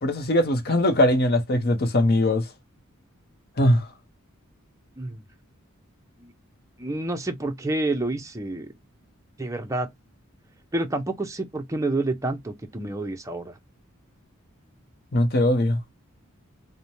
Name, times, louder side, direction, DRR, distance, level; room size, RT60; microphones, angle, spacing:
voice 1, 0.0-2.5 3.6-3.8 15.1-15.8, left 1 dB, 45° left, 0.7 m, -21 dB
voice 2, 6.8-8.7 9.4-9.9 10.7-13.5, right 2 dB, 15° right, 0.5 m, -28 dB
3.1 x 2.1 x 2.6 m
head